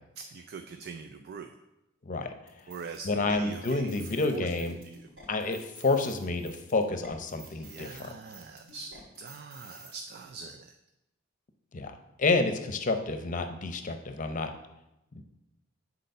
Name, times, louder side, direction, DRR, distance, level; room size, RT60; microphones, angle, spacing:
voice 1, 0.2-1.6 2.7-3.9 4.2-4.5 4.9-5.1 7.4-10.7, right 5 dB, 50° right, 7 dB, 0.4 m, -43 dB
sound 1, 2.5-10.0, right 1 dB, 70° right, 3.1 m, -52 dB
voice 2, 3.0-4.8 5.3-8.0 11.7-11.9 12.2-14.5 15.2-15.3, left 3 dB, 40° left, 7 dB, 0.7 m, -29 dB
6.8 x 4.1 x 6.5 m, 0.92 s
head